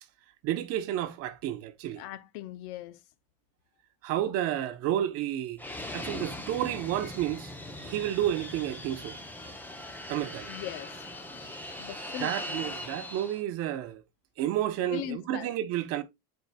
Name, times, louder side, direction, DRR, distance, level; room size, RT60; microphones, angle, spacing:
voice 1, 0.4-2.0 4.0-5.6 5.9-7.5 7.8-9.2 10.1-10.5 12.2-14.0 14.4-16.0, right 12 dB, 45° right, 0.8 m, -31 dB
voice 2, 2.0-3.0 10.5-11.1 11.8-13.1 14.9-15.5, left 13 dB, 65° left, 0.7 m, -40 dB
Fixed-wing aircraft airplane, 5.6-13.4, left 1 dB, 5° left, 0.6 m, -40 dB
11.0 x 4.6 x 2.2 m
cardioid pair, 170°, 33 cm